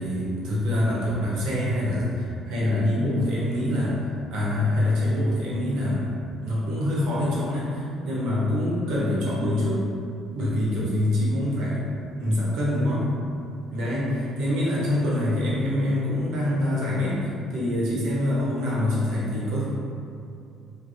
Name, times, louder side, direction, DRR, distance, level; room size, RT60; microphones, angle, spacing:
voice 1, 0.0-4.0 4.3-6.1 6.4-9.8 10.3-11.8 12.2-13.1 13.7-14.1 14.4-19.7, left 1 dB, 75° right, -6 dB, 0.9 m, -25 dB
3.2 x 2.6 x 2.6 m, 2.5 s
supercardioid pair, 85°, 0 cm